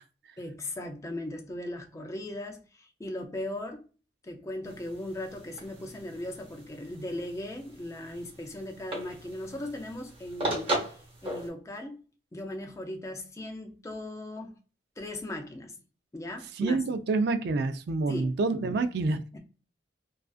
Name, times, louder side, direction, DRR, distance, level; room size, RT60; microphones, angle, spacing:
voice 1, 0.4-3.8 4.2-12.0 12.3-14.6 15.0-15.8 16.1-16.8 18.1-18.3 19.3-19.4, left 1 dB, 15° left, 0.4 m, -38 dB
sound 1, 4.6-11.5, right 1 dB, 25° right, 0.8 m, -38 dB
voice 2, 16.6-19.2, right 3 dB, 55° right, 0.3 m, -27 dB
2.4 x 2.4 x 2.3 m
head